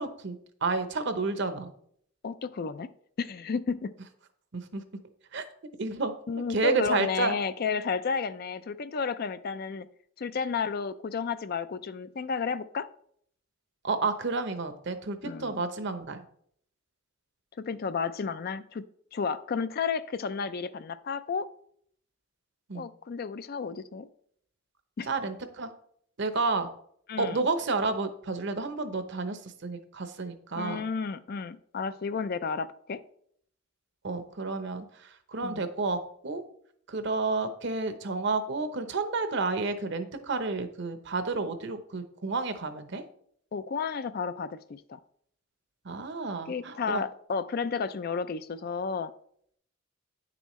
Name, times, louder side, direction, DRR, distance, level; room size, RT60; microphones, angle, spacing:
voice 1, 0.0-1.7 4.5-4.8 5.3-5.4 5.8-6.1 6.5-7.4 13.8-16.2 22.7-22.9 25.0-25.7 26.2-26.7 27.2-30.8 34.0-36.4 36.9-43.0 45.8-47.0, right 3 dB, 60° right, 9 dB, 0.8 m, -31 dB
voice 2, 2.2-2.9 3.2-3.9 6.3-9.9 10.2-12.9 15.2-15.6 17.7-18.8 19.1-21.5 22.7-24.1 25.0-25.1 27.1-27.5 30.6-33.0 35.4-35.6 43.5-45.0 46.5-49.1, left 5 dB, 45° left, 13 dB, 0.4 m, -32 dB
9.6 x 6.9 x 3.1 m, 0.65 s
head